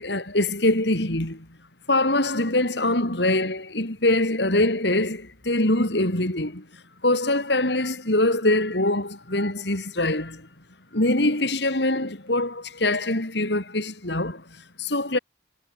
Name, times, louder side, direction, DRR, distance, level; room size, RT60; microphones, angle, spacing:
voice 1, 0.0-1.5 1.9-10.5 10.9-15.2, left 1 dB, 65° left, 4.1 m, -24 dB
head